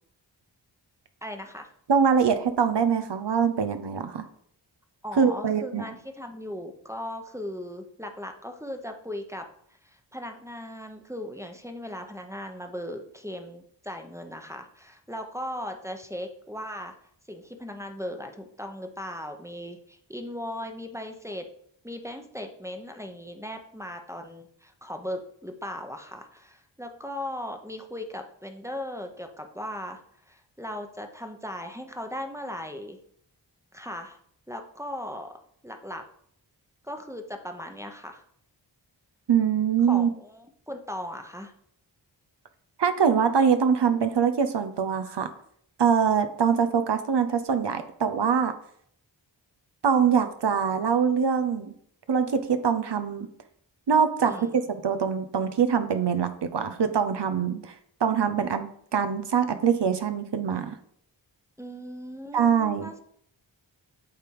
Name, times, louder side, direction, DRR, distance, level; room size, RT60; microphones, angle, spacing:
voice 1, 1.2-1.7 5.0-9.4 9.8-16.9 17.3-21.4 21.8-30.0 30.3-33.0 33.7-34.2 34.5-35.3 35.6-36.0 36.8-38.2 39.9-41.5 54.3-54.6 61.6-63.0, left 1 dB, 5° right, 4 dB, 0.9 m, -38 dB
voice 2, 1.9-4.3 5.2-5.8 39.3-40.1 42.8-45.3 45.8-48.5 49.8-51.7 52.1-53.3 53.9-57.7 58.0-58.7 58.9-60.8 62.3-62.9, right 7 dB, 65° right, 9 dB, 0.8 m, -23 dB
8.2 x 3.4 x 4.7 m, 0.65 s
cardioid pair, 45°, 45 cm